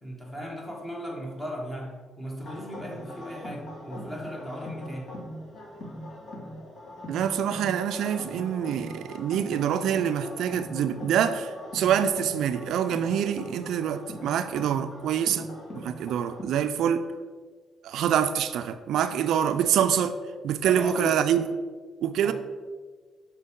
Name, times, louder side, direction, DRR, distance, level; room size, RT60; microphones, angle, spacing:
voice 1, 0.0-5.1 20.6-21.1 22.2-22.3, equal, 15° left, 1.5 m, -37 dB
sound 1, 2.4-16.4, equal, 55° left, 1.5 m, -41 dB
voice 2, 7.1-15.5 15.8-17.0 17.8-20.2 20.4-21.4 22.0-22.3, right 9 dB, 80° right, 0.3 m, -26 dB
6.6 x 4.5 x 3.6 m
cardioid pair, 90°, 0 cm